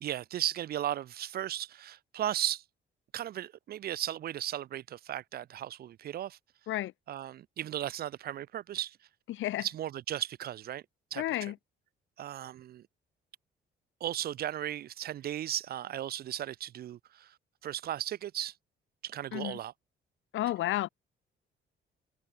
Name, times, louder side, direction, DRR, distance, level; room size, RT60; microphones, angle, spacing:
voice 1, 0.0-2.6 3.1-6.4 7.1-9.0 9.6-10.8 11.1-11.5 12.2-12.8 14.0-17.3 17.6-18.5 19.0-19.7, right 12 dB, 50° right, 0.4 m, -36 dB
voice 2, 9.3-9.7 11.2-11.6 19.3-19.6 20.3-20.9, left 14 dB, 80° left, 1.2 m, -31 dB
cardioid pair, 90°, 20 cm